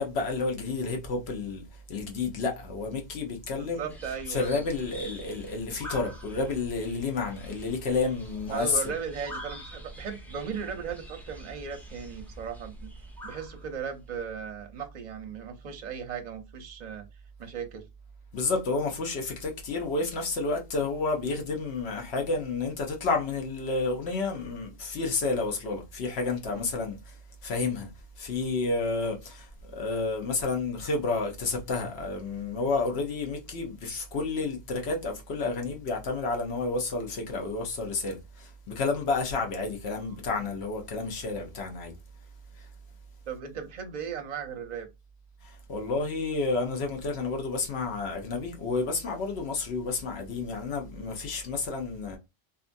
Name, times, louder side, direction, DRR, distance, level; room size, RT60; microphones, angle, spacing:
voice 1, 0.0-3.9 4.3-8.8 18.3-27.9 28.2-41.9 42.5-42.7 45.4-52.2, left 3 dB, 90° left, 1.1 m, -30 dB
voice 2, 3.6-4.7 8.5-12.9 13.2-17.0 17.4-17.9 43.3-44.9, right 7 dB, 50° right, 0.6 m, -37 dB
sound 1, 3.9-14.2, equal, 5° left, 0.4 m, -45 dB
2.7 x 2.4 x 2.5 m
omnidirectional pair, 1.1 m